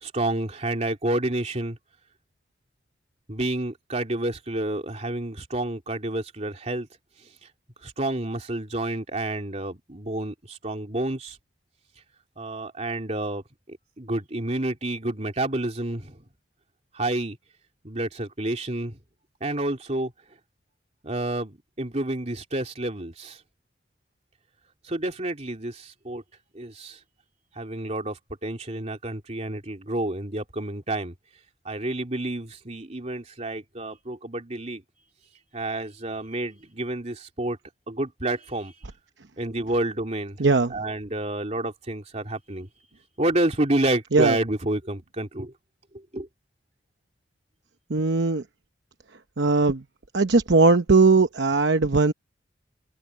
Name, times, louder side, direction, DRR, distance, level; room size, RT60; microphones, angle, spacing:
voice 1, 0.0-1.8 3.3-6.9 7.8-11.4 12.4-13.4 13.7-16.2 16.9-17.4 17.8-19.0 19.4-20.1 21.0-23.4 24.9-26.2 26.5-27.0 27.6-31.1 31.6-34.8 35.5-37.6 37.9-38.7 39.4-40.4 40.7-42.7 43.2-45.5 46.1-46.3, right 1 dB, 35° right, 3.1 m, -29 dB
voice 2, 40.4-40.8 44.1-44.4 47.9-48.4 49.4-49.8 50.1-52.1, right 3 dB, 65° right, 0.9 m, -19 dB
open air
head